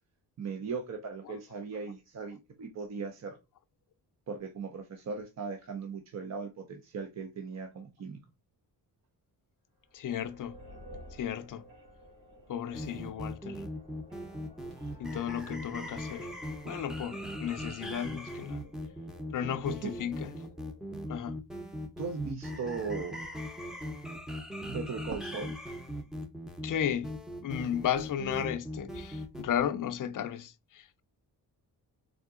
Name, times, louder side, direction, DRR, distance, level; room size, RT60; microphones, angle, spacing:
voice 1, 0.4-3.4 4.3-8.2 19.8-19.9 22.0-23.2 24.7-25.5, right 5 dB, 40° right, 0.6 m, -38 dB
voice 2, 9.9-10.6 11.1-11.7 12.5-13.6 15.0-16.3 16.6-18.7 19.3-20.3 21.1-21.4 26.6-27.1 27.4-31.0, left 9 dB, 50° left, 0.5 m, -34 dB
sound 1, 9.9-21.2, equal, 90° right, 2.5 m, -54 dB
sound 2, 12.7-29.4, equal, ahead, 0.6 m, -40 dB
3.7 x 3.6 x 3.6 m
wide cardioid pair, 145°, 40 cm